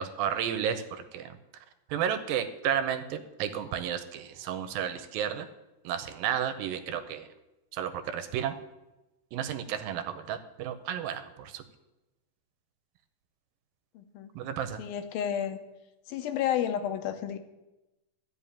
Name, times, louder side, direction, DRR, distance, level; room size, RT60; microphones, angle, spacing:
voice 1, 0.0-1.3 1.9-5.5 5.8-7.3 7.7-8.6 9.3-11.6 14.4-14.8, right 9 dB, 80° right, 10 dB, 2.3 m, -32 dB
voice 2, 13.9-14.3 14.8-15.6 16.1-17.4, left 9 dB, 85° left, 8 dB, 2.5 m, -31 dB
12.5 x 5.6 x 8.5 m, 1.0 s
omnidirectional pair, 4.3 m